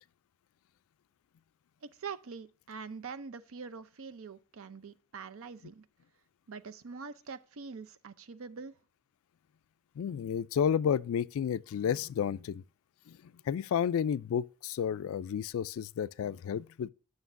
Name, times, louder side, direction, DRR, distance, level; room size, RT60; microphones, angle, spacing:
voice 1, 1.8-5.9 6.5-8.8, right 5 dB, 65° right, 0.5 m, -44 dB
voice 2, 10.0-12.6 13.5-16.9, left 8 dB, 65° left, 0.3 m, -31 dB
9.3 x 6.4 x 2.5 m
head